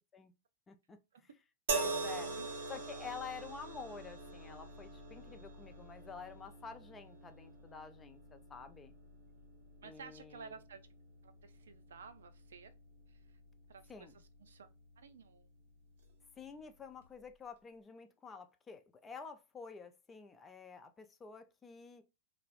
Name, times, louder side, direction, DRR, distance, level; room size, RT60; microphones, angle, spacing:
voice 1, 0.7-1.3 1.7-2.3 2.7-8.9 9.8-10.6 13.9-14.1 16.4-22.0, left 5 dB, 20° left, 0.4 m, -49 dB
sound 1, 1.7-15.0 16.0-16.1, right 3 dB, 60° right, 1.0 m, -44 dB
voice 2, 2.1-2.5 9.8-10.9 11.2-12.7 13.1-13.4 13.7-14.7 15.0-15.5, right 5 dB, 80° right, 0.4 m, -54 dB
2.4 x 2.0 x 2.4 m
hypercardioid pair, 110°, 0 cm